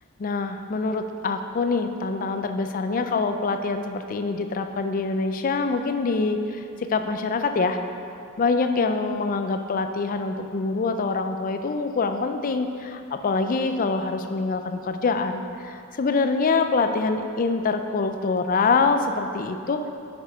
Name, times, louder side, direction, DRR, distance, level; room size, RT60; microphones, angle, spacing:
voice 1, 0.2-7.8 8.4-19.8, left 4 dB, 40° left, 7 dB, 0.4 m, -25 dB
6.3 x 5.2 x 5.0 m, 2.6 s
head